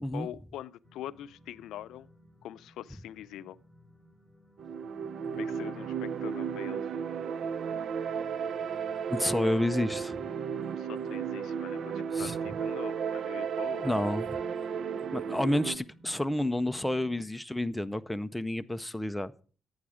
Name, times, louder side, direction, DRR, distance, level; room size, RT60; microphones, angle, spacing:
voice 1, 0.1-2.1 2.4-3.6 5.3-6.8 10.8-11.9 12.2-13.9, left 12 dB, 80° left, 0.5 m, -43 dB
sound 1, 0.8-17.2, equal, 10° right, 4.3 m, -58 dB
sound 2, 4.6-15.8, right 7 dB, 60° right, 0.5 m, -34 dB
voice 2, 9.1-10.2 12.1-12.4 13.8-14.4 15.1-19.3, left 1 dB, 5° left, 0.5 m, -30 dB
11.5 x 8.7 x 4.9 m
cardioid pair, 90°, 0 cm